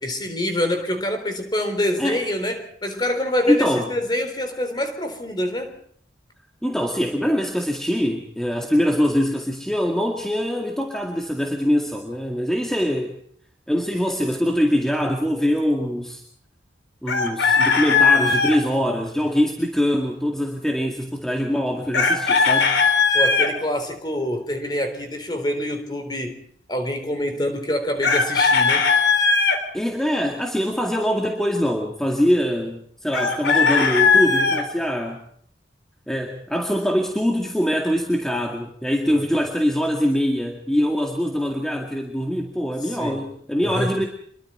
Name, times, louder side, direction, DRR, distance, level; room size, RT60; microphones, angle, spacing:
voice 1, 0.0-5.7 23.1-26.4 26.7-28.8 39.1-39.3 42.8-43.3 43.6-43.9, left 1 dB, 20° left, 6 dB, 3.9 m, -26 dB
voice 2, 3.5-3.9 6.6-13.2 13.7-16.2 17.0-22.8 29.7-35.2 36.1-44.0, equal, 5° left, 1 dB, 2.1 m, -23 dB
Chicken rooster, 17.1-18.6 21.9-23.5 28.0-29.6 33.1-34.6, left 5 dB, 70° left, 3.5 m, -18 dB
28.0 x 23.0 x 4.5 m, 0.62 s
head